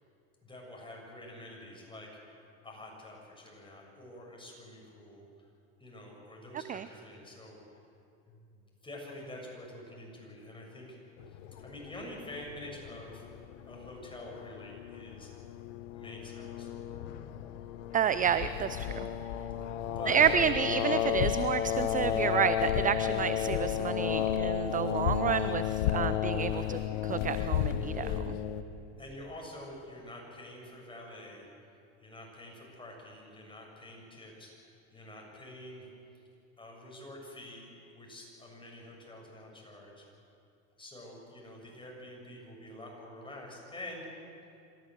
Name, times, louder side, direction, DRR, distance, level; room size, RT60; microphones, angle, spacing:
voice 1, 0.4-2.1 2.6-5.3 5.8-7.8 8.3-8.4 8.8-11.0 11.6-13.2 13.7-15.3 15.9-16.7 18.3-18.6 20.0-20.2 26.4-26.7 29.0-31.5 32.0-35.9 36.6-40.0 40.8-44.1, left 1 dB, 15° left, -1 dB, 7.1 m, -47 dB
sound 1, 11.2-28.6, left 10 dB, 70° left, 1.2 m, -33 dB
voice 2, 17.9-18.9 20.1-26.8 27.0-28.4, right 8 dB, 20° right, 13 dB, 0.5 m, -30 dB
26.5 x 14.0 x 7.8 m, 2.6 s
hypercardioid pair, 90°, 38 cm